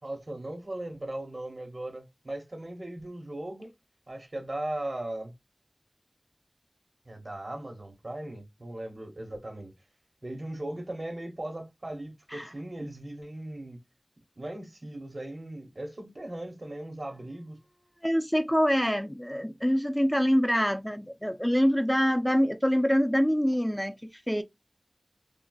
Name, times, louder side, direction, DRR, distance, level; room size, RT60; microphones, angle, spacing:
voice 1, 0.0-3.7 4.1-5.3 7.0-9.7 10.2-13.8 14.4-17.6, right 1 dB, 80° right, 1.1 m, -38 dB
voice 2, 18.0-24.4, equal, 5° left, 0.6 m, -25 dB
3.7 x 2.1 x 2.3 m
wide cardioid pair, 40°, 0 cm